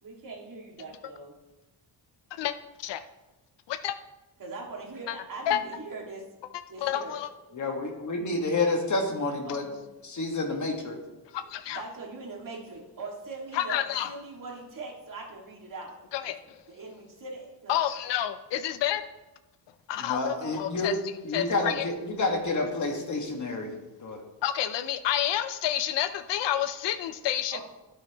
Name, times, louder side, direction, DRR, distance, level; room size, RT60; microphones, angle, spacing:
voice 1, 0.0-1.4 4.4-6.3 6.7-7.2 9.5-9.8 11.4-16.3 16.7-17.8 20.2-20.6 27.5-27.6, right 3 dB, 50° right, -1 dB, 2.0 m, -41 dB
voice 2, 6.8-7.3 11.3-11.8 13.5-14.1 16.1-16.6 17.7-19.0 19.9-20.9 21.3-21.9 24.4-27.6, left 11 dB, 80° left, 11 dB, 0.6 m, -29 dB
voice 3, 7.5-9.7 10.0-11.0 20.0-21.0 21.2-23.7 24.0-24.2, left 2 dB, 45° left, 2 dB, 1.6 m, -29 dB
14.5 x 5.6 x 2.9 m, 1.0 s
cardioid pair, 120°, 42 cm